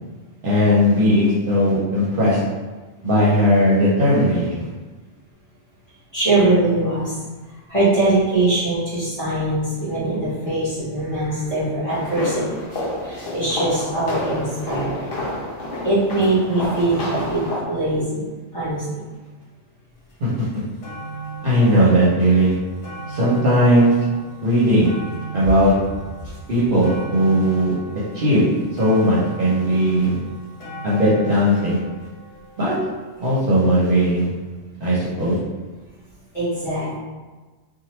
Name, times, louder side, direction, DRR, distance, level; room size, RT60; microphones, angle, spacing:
voice 1, 0.4-2.4 3.0-4.7 20.2-20.5 21.4-22.6 23.1-23.9 24.4-24.9 25.3-25.7 26.5-27.7 28.1-28.5 28.8-30.2 30.8-31.8 32.6-32.7 33.2-34.3 34.8-35.4, equal, 50° right, -8 dB, 0.8 m, -17 dB
voice 2, 6.1-7.2 7.7-12.6 13.0-15.2 15.8-18.2 18.5-19.0 36.3-36.9, right 2 dB, 30° left, -12 dB, 1.3 m, -22 dB
sound 1, 11.9-17.6, left 1 dB, 55° left, 0.8 m, -29 dB
sound 2, 20.1-20.2 20.5-33.7 34.5-34.6, right 3 dB, 75° left, 1.1 m, -37 dB
2.9 x 2.2 x 3.0 m, 1.3 s
omnidirectional pair, 1.3 m